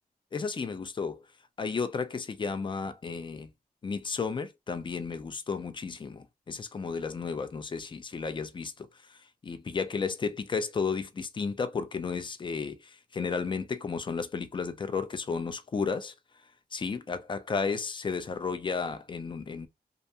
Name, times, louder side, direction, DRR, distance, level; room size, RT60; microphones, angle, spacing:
voice 1, 0.3-1.2 1.6-3.5 3.8-16.1 16.7-19.7, left 5 dB, 30° left, 0.4 m, -33 dB
2.4 x 2.2 x 2.7 m
wide cardioid pair, 115°, 16 cm